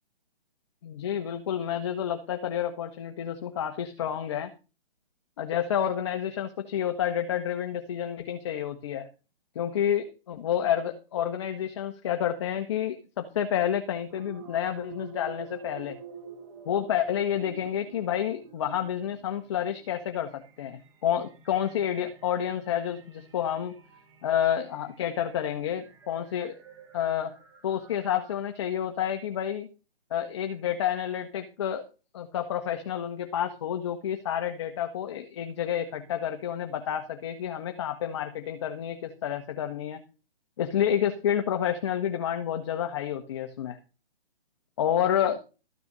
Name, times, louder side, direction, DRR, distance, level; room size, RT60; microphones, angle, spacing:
voice 1, 0.8-4.5 5.4-9.1 9.5-16.0 16.6-23.7 24.2-26.6 26.9-27.3 27.6-29.7 30.1-31.8 32.1-40.0 40.6-43.8 44.8-45.4, left 10 dB, 30° left, 6 dB, 1.2 m, -29 dB
sound 1, 14.1-28.7, right 6 dB, 30° right, 3.1 m, -49 dB
13.5 x 6.8 x 6.7 m, 0.33 s
hypercardioid pair, 160°, 29 cm